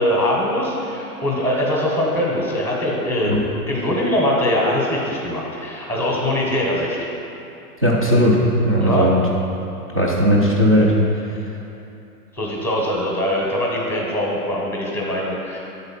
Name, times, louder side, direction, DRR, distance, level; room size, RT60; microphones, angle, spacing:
voice 1, 0.0-3.4 3.7-7.0 8.8-9.1 12.3-15.6, left 1 dB, 5° left, -3 dB, 0.8 m, -22 dB
voice 2, 7.8-9.2 9.9-10.9, equal, 25° right, -7 dB, 0.3 m, -17 dB
8.0 x 4.0 x 5.6 m, 2.8 s
hypercardioid pair, 135°, 47 cm